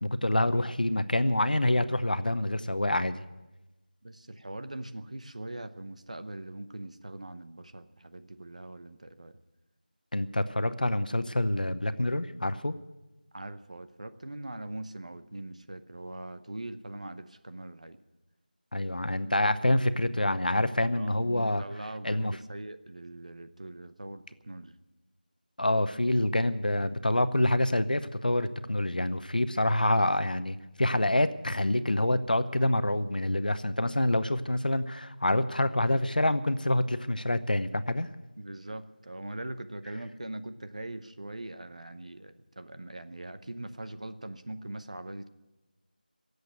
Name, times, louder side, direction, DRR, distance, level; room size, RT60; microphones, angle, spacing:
voice 1, 0.0-3.2 10.1-12.8 18.7-21.6 22.0-22.4 25.6-38.1, left 1 dB, 65° left, 13 dB, 0.9 m, -27 dB
voice 2, 4.0-9.4 13.3-18.0 21.0-24.7 38.4-45.3, right 1 dB, 45° right, 10 dB, 0.9 m, -41 dB
17.0 x 8.1 x 9.3 m, 1.1 s
figure-of-eight pair, 170°, 5 cm